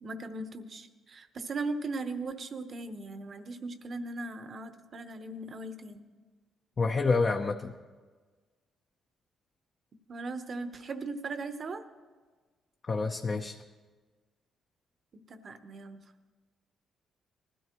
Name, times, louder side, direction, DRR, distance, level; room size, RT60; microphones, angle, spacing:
voice 1, 0.0-6.0 10.1-11.8 15.1-16.0, right 3 dB, 45° right, 9 dB, 0.9 m, -38 dB
voice 2, 6.8-7.7 12.9-13.6, left 4 dB, 35° left, 3 dB, 0.7 m, -28 dB
19.5 x 12.5 x 3.0 m, 1.4 s
cardioid pair, 90°, 0 cm